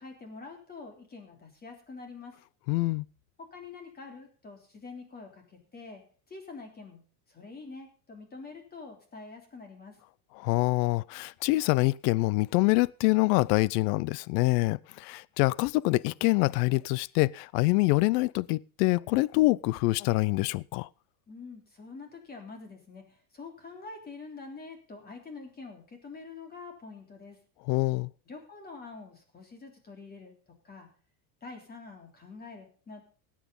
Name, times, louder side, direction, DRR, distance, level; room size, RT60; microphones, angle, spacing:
voice 1, 0.0-2.4 3.4-10.0 21.3-27.4 28.3-30.9 31.4-33.0, left 4 dB, 20° left, 3.5 m, -46 dB
voice 2, 2.7-3.0 10.4-20.9 27.7-28.1, left 22 dB, 75° left, 0.7 m, -25 dB
17.5 x 8.7 x 5.4 m
cardioid pair, 160°, 49 cm